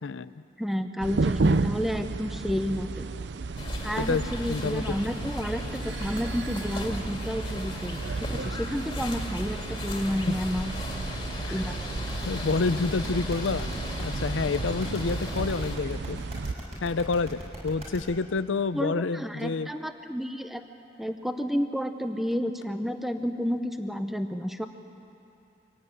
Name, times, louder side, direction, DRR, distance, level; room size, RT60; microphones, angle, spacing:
voice 1, 0.0-0.3 4.0-4.2 4.5-5.0 11.4-11.7 12.2-13.7 14.0-16.2 16.8-19.7, left 4 dB, 85° left, 14 dB, 0.5 m, -28 dB
voice 2, 0.6-3.1 3.8-10.7 11.5-12.1 18.7-20.6 21.0-24.7, equal, ahead, 7 dB, 0.7 m, -31 dB
sound 1, 1.0-16.6, right 3 dB, 70° right, 0.5 m, -33 dB
sound 2, 3.6-15.8, left 1 dB, 25° left, 2.5 m, -37 dB
sound 3, 12.1-18.0, equal, 35° right, 6.3 m, -39 dB
24.5 x 16.5 x 9.8 m, 2.8 s
head